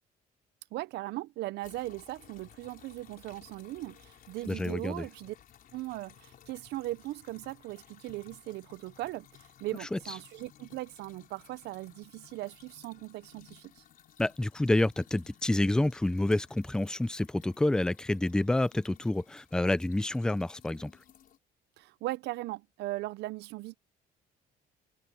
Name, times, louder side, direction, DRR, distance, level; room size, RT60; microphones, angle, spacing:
voice 1, 0.7-5.3 5.7-13.8 21.8-23.8, right 17 dB, 80° right, 0.7 m, -39 dB
sound 1, 1.6-21.4, left 10 dB, 55° left, 4.3 m, -58 dB
voice 2, 4.5-5.1 9.9-10.0 14.2-20.9, left 1 dB, 5° left, 0.4 m, -28 dB
cardioid pair, 110°, 17 cm